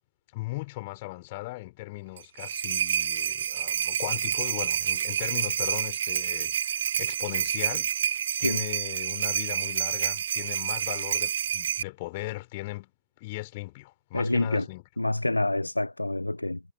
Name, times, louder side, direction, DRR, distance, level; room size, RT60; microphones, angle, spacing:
voice 1, 0.3-7.9 8.4-12.9 13.2-14.8, left 21 dB, 50° left, 5.3 m, -38 dB
sound 1, 2.2-11.8, right 9 dB, 65° right, 0.9 m, -28 dB
voice 2, 14.1-14.7 15.0-16.6, left 2 dB, 85° left, 0.5 m, -27 dB
figure-of-eight pair, 90°, 0 cm